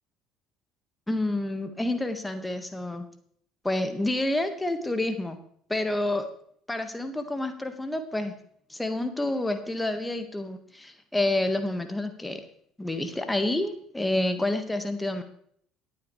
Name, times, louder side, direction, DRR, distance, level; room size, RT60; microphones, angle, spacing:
voice 1, 1.1-3.0 3.6-5.4 5.7-6.3 6.7-8.3 8.7-12.4 12.8-15.2, left 1 dB, 10° left, 7 dB, 1.7 m, -28 dB
18.5 x 8.8 x 3.3 m, 0.64 s
figure-of-eight pair, 55°, 0 cm